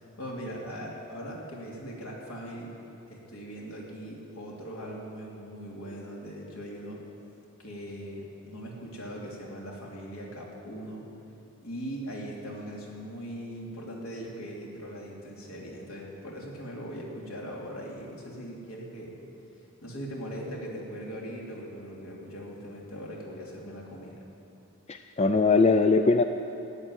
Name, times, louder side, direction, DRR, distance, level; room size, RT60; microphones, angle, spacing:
voice 1, 0.0-2.8 3.1-7.0 7.6-11.1 11.6-19.2 19.8-24.2, equal, 70° left, -3 dB, 3.0 m, -40 dB
voice 2, 24.9-26.2, left 3 dB, 30° left, 7 dB, 0.4 m, -21 dB
14.0 x 8.9 x 9.7 m, 2.9 s
head